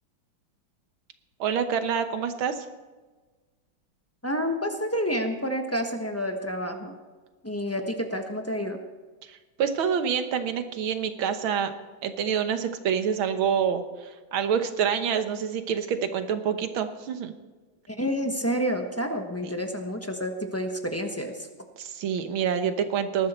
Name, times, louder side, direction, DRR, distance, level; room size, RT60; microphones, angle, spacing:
voice 1, 1.4-2.7 9.3-11.7 12.0-17.3 21.8-23.3, right 7 dB, 90° right, 9 dB, 1.9 m, -27 dB
voice 2, 4.2-6.9 7.4-8.8 17.9-21.5, equal, 10° left, 4 dB, 0.9 m, -29 dB
19.5 x 12.0 x 4.4 m, 1.3 s
omnidirectional pair, 2.2 m